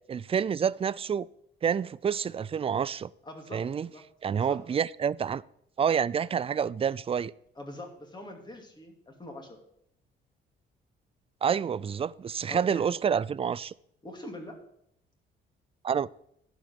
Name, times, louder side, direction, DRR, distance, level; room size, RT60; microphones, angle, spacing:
voice 1, 0.1-1.3 1.6-3.1 3.5-3.9 4.2-5.4 5.8-7.3 11.4-13.7 15.8-16.1, right 7 dB, 30° right, 0.3 m, -28 dB
voice 2, 3.2-4.0 4.3-4.6 7.6-9.6 12.5-12.8 14.0-14.6, left 1 dB, 20° left, 2.5 m, -43 dB
11.0 x 5.1 x 7.8 m
cardioid pair, 90°, 20 cm